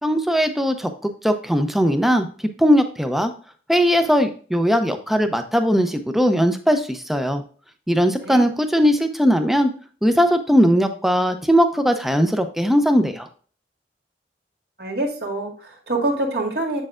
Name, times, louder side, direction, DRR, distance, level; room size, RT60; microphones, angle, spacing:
voice 1, 0.0-2.3 2.6-3.3 3.7-7.4 7.9-9.7 10.0-13.3, equal, ahead, 7 dB, 0.6 m, -19 dB
voice 2, 14.8-16.8, right 2 dB, 65° right, 1 dB, 2.0 m, -25 dB
7.8 x 6.4 x 2.4 m, 0.42 s
head